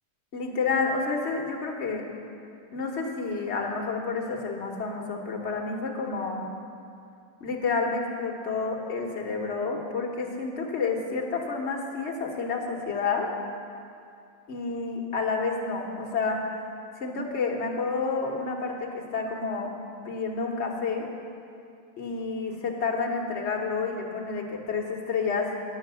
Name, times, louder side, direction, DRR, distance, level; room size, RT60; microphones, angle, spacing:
voice 1, 0.3-2.0 2.7-6.4 7.4-13.3 14.5-16.6 17.0-19.7 20.0-21.1 22.0-25.6, left 4 dB, 50° left, 0 dB, 1.4 m, -29 dB
10.5 x 7.0 x 6.8 m, 2.4 s
omnidirectional pair, 1.6 m